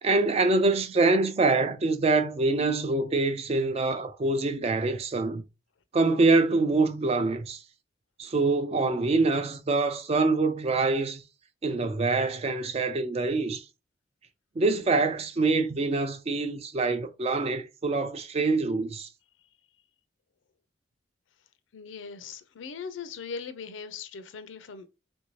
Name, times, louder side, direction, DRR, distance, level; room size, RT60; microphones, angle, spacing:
voice 1, 0.0-5.4 5.9-7.6 8.2-11.2 11.6-13.6 14.6-19.1, right 3 dB, 35° right, 0.4 m, -25 dB
voice 2, 21.7-24.9, left 5 dB, 90° left, 0.5 m, -40 dB
3.4 x 2.6 x 3.0 m
head